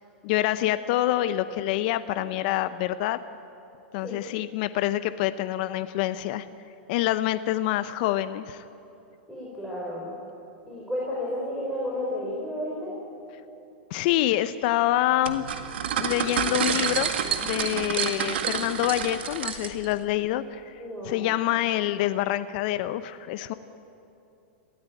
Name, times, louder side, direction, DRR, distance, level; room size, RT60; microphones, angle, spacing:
voice 1, 0.2-3.2 3.9-6.5 6.9-8.6 13.9-15.4 16.0-17.1 17.4-23.5, left 14 dB, 55° left, 12 dB, 0.7 m, -26 dB
voice 2, 9.3-10.1 10.7-12.9 20.8-21.3, left 1 dB, ahead, -7 dB, 4.7 m, -32 dB
sound 1, 15.3-19.9, right 7 dB, 80° right, 1.9 m, -28 dB
22.0 x 15.5 x 9.1 m, 2.8 s
hypercardioid pair, 120°, 6 cm